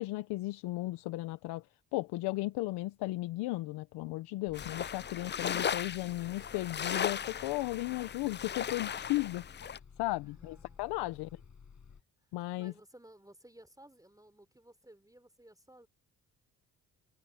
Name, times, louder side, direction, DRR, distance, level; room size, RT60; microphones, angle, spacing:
voice 1, 0.0-1.7 1.9-11.4 12.3-12.7, left 19 dB, 90° left, 0.8 m, -35 dB
Bus, 4.5-12.0, left 6 dB, 45° left, 5.7 m, -55 dB
sound 1, 4.5-9.8, left 8 dB, 30° left, 0.5 m, -37 dB
voice 2, 10.2-11.3 12.3-15.9, right 1 dB, 10° right, 4.4 m, -58 dB
open air
supercardioid pair, 55°, 39 cm